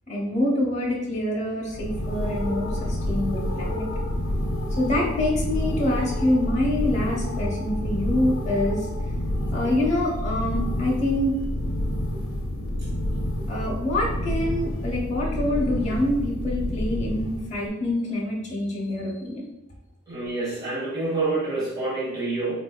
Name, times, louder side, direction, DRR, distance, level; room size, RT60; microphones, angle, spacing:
voice 1, 0.1-3.9 4.8-8.9 9.5-11.4 13.5-19.5, left 1 dB, 35° left, -4 dB, 0.9 m, -26 dB
sound 1, 1.7-17.7, left 1 dB, 80° left, 0.6 m, -28 dB
voice 2, 20.1-22.6, right 2 dB, 20° right, -7 dB, 0.9 m, -27 dB
3.6 x 2.7 x 2.3 m, 0.88 s
head